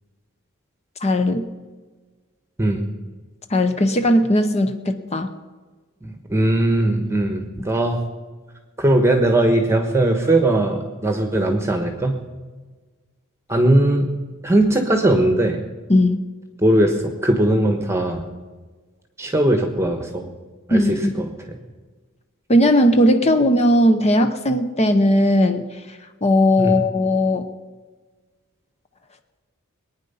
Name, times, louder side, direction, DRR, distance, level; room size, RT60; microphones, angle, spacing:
voice 1, 1.0-1.5 3.5-5.3 15.9-16.2 20.7-21.3 22.5-25.7 26.2-27.5, left 1 dB, 30° left, 8 dB, 0.8 m, -17 dB
voice 2, 6.0-8.0 8.8-12.2 13.5-14.0 14.4-15.6 16.6-18.2 19.2-20.3 20.7-21.0 26.6-26.8, right 1 dB, 10° right, 5 dB, 1.1 m, -19 dB
22.0 x 9.5 x 5.6 m, 1.4 s
head